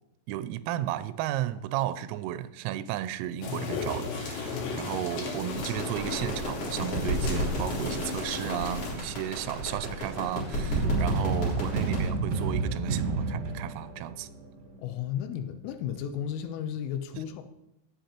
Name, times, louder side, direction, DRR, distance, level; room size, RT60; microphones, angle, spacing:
voice 1, 0.3-14.3 17.1-17.2, right 12 dB, 90° right, 3.2 m, -34 dB
sound 1, 3.4-8.9, left 4 dB, 65° left, 3.9 m, -35 dB
sound 2, 5.5-12.1, equal, 35° left, 4.0 m, -33 dB
sound 3, 10.7-14.7, right 4 dB, 60° right, 4.5 m, -30 dB
voice 2, 14.8-17.4, left 9 dB, 85° left, 3.3 m, -34 dB
16.5 x 8.0 x 2.9 m
omnidirectional pair, 5.8 m